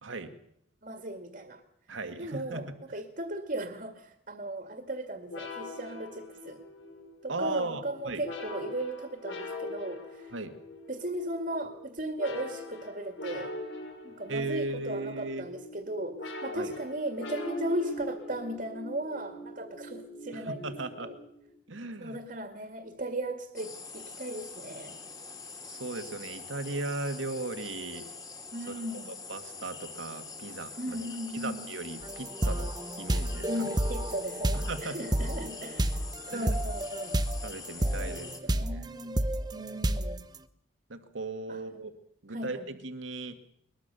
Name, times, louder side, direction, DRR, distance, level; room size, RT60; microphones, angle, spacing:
voice 1, 0.0-0.3 1.9-2.7 7.3-8.2 10.3-10.5 14.3-15.5 16.6-16.7 20.3-21.1 21.7-22.2 25.6-28.1 28.7-28.8 29.1-31.0 31.3-32.7 33.0-33.7 34.5-35.0 36.3-36.5 37.4-38.3 38.6-38.9 40.9-41.9 42.2-43.4, right 2 dB, 75° right, 8 dB, 2.0 m, -37 dB
voice 2, 0.8-1.6 2.2-6.6 7.2-10.3 10.9-13.5 14.0-20.7 21.0-21.2 22.0-25.0 28.5-29.2 30.8-31.6 33.5-36.0 36.3-37.2 38.0-39.2 39.5-40.2 41.5-41.8 42.3-42.7, right 1 dB, 45° right, 6 dB, 2.1 m, -37 dB
sound 1, 5.3-21.5, left 1 dB, 75° left, 6.4 m, -42 dB
sound 2, 23.5-38.4, left 4 dB, 20° left, 2.7 m, -44 dB
sound 3, 32.0-37.5 37.8-40.2, right 1 dB, 20° right, 0.9 m, -30 dB
22.0 x 21.5 x 6.9 m, 0.72 s
head